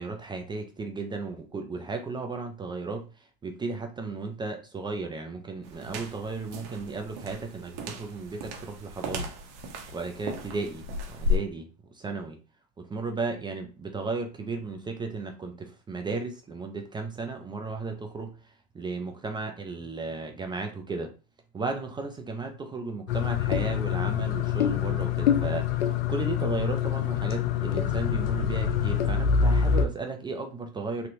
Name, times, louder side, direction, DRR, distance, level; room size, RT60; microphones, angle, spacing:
voice 1, 0.0-9.3 9.9-12.4 12.8-21.1 21.5-31.1, right 3 dB, 15° right, 4 dB, 0.5 m, -35 dB
sound 1, 5.6-11.4, left 3 dB, 55° right, 0.8 m, -34 dB
sound 2, 23.1-29.9, left 7 dB, 70° left, 0.5 m, -25 dB
3.1 x 2.7 x 2.6 m, 0.34 s
hypercardioid pair, 90°, 29 cm